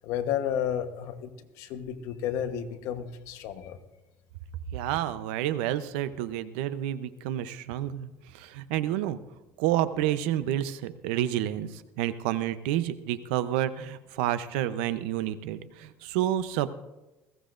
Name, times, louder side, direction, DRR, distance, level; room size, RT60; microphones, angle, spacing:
voice 1, 0.0-1.3 1.6-3.8, left 9 dB, 60° left, 7 dB, 1.1 m, -32 dB
voice 2, 4.7-9.2 9.6-16.7, right 12 dB, 85° right, 13 dB, 0.7 m, -29 dB
20.0 x 15.5 x 2.6 m, 1.0 s
cardioid pair, 150°, 6 cm